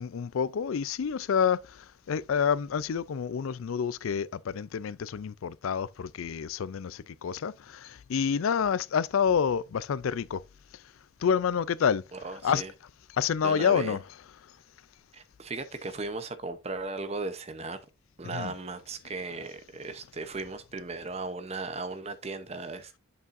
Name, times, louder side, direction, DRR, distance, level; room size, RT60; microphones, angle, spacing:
voice 1, 0.0-10.4 11.2-12.0 12.4-12.6 13.1-14.0 18.3-18.5, left 7 dB, 85° left, 0.4 m, -28 dB
voice 2, 12.1-12.7 13.4-14.0 15.1-17.8 18.2-23.0, right 3 dB, 30° right, 0.8 m, -36 dB
8.3 x 7.2 x 2.6 m
head